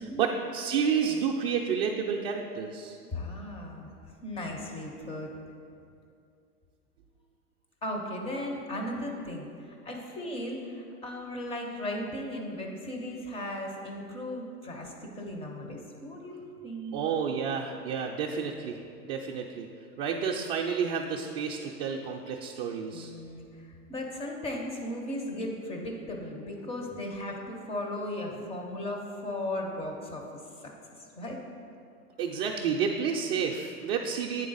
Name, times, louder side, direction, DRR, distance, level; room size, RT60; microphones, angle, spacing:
voice 1, 0.0-3.0 16.9-19.7 20.0-23.1 32.2-34.5, right 6 dB, 40° right, -1 dB, 0.4 m, -30 dB
voice 2, 3.0-3.9 4.2-5.3 7.8-16.4 16.6-17.0 22.9-31.4, left 1 dB, 15° left, 1 dB, 0.4 m, -36 dB
8.6 x 3.4 x 3.9 m, 2.5 s
hypercardioid pair, 105°, 46 cm